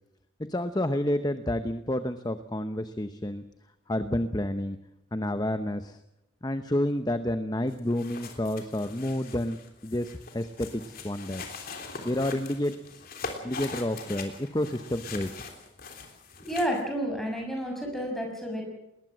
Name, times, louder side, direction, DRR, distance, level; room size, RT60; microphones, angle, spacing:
voice 1, 0.4-3.4 3.9-4.8 5.1-6.0 6.4-11.4 12.0-13.1 13.4-15.3, left 1 dB, 20° left, 10 dB, 0.8 m, -30 dB
sound 1, 7.7-16.8, left 4 dB, 45° left, 3.4 m, -42 dB
voice 2, 16.4-18.6, equal, ahead, 1 dB, 6.1 m, -30 dB
20.0 x 19.5 x 7.5 m, 0.87 s
head